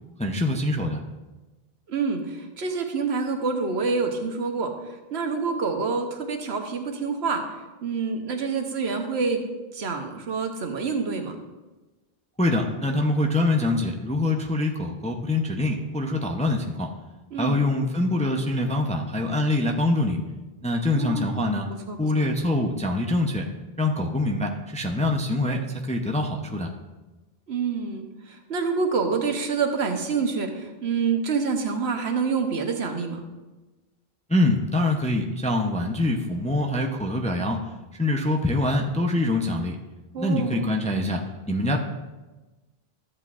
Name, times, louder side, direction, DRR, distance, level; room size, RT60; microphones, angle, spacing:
voice 1, 0.2-1.0 12.4-16.9 17.4-20.2 20.6-21.7 22.0-23.5 23.8-26.7 34.3-37.6 38.0-39.8 40.2-41.2 41.5-41.8, left 2 dB, 10° left, 2 dB, 0.4 m, -24 dB
voice 2, 1.9-4.7 5.1-7.4 7.8-9.4 9.7-11.4 17.3-17.6 20.9-21.5 21.9-22.3 27.5-33.2 40.1-40.7, right 5 dB, 80° right, 4 dB, 1.2 m, -27 dB
13.0 x 8.1 x 2.4 m, 1.2 s
omnidirectional pair, 1.1 m